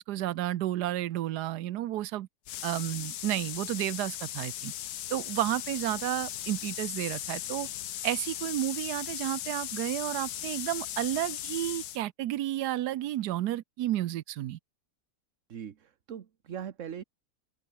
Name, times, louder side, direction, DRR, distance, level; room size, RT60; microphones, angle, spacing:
voice 1, 0.0-2.3 2.6-4.7 5.1-7.7 8.0-14.6, right 14 dB, 90° right, 1.3 m, -31 dB
sound 1, 2.4-12.0, left 12 dB, 75° left, 1.3 m, -38 dB
voice 2, 15.5-17.0, right 8 dB, 55° right, 1.4 m, -40 dB
open air
omnidirectional pair, 1.7 m